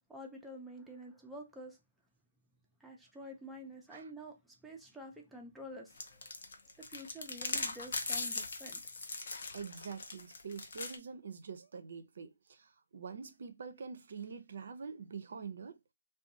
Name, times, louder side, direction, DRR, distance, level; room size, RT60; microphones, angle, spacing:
voice 1, 0.1-1.8 2.8-6.3 6.8-8.8, equal, ahead, 0.5 m, -49 dB
sound 1, 6.0-11.0, left 3 dB, 60° left, 0.6 m, -39 dB
voice 2, 9.5-15.8, right 5 dB, 55° right, 0.5 m, -45 dB
2.6 x 2.3 x 2.7 m
hypercardioid pair, 155°, 0 cm